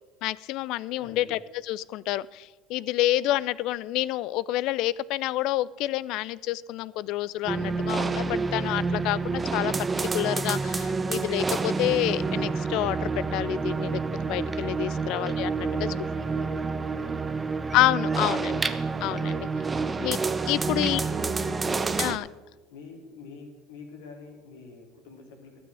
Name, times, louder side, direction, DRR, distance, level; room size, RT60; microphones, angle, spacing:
voice 1, 0.2-9.7 10.1-15.9 17.7-18.6 19.0-19.5 20.0-20.2 20.5-21.0 22.0-22.3, left 15 dB, 65° left, 20 dB, 0.4 m, -28 dB
voice 2, 1.0-1.3 14.8-15.3 15.7-17.4 18.1-18.6 19.7-20.2 21.0-22.0 22.7-25.6, left 4 dB, 80° left, 2 dB, 2.5 m, -46 dB
sound 1, 7.5-22.2, right 4 dB, 20° right, 0.7 m, -28 dB
12.5 x 6.2 x 8.7 m, 1.2 s
hypercardioid pair, 80°, 0 cm